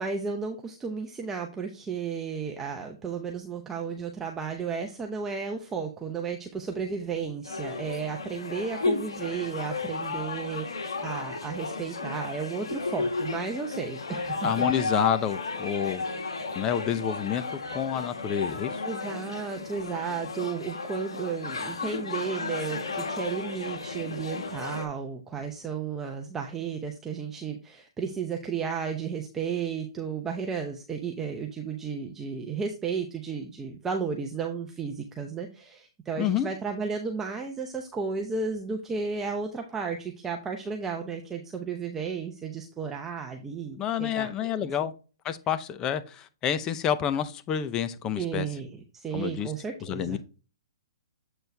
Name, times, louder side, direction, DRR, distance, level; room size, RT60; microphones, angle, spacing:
voice 1, 0.0-14.5 18.8-44.7 48.2-50.2, right 5 dB, 15° right, 0.8 m, -33 dB
sound 1, 7.4-24.8, left 3 dB, 90° left, 2.1 m, -33 dB
voice 2, 14.4-16.0 16.6-18.8 36.2-36.5 43.7-44.9 45.2-48.5 49.1-49.5 49.8-50.2, left 9 dB, 25° left, 0.6 m, -29 dB
8.0 x 4.4 x 3.4 m
hypercardioid pair, 140°, 3 cm